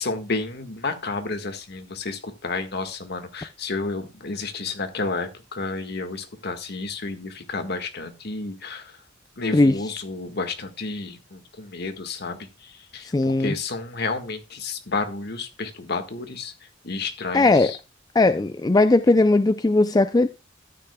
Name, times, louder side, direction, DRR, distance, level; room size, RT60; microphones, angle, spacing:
voice 1, 0.0-9.0 9.4-13.1 13.4-16.5 16.8-17.8, left 3 dB, 55° left, 1.6 m, -31 dB
voice 2, 13.1-13.5 17.3-17.7 18.1-20.3, left 2 dB, 20° left, 0.4 m, -18 dB
13.5 x 9.7 x 2.3 m
head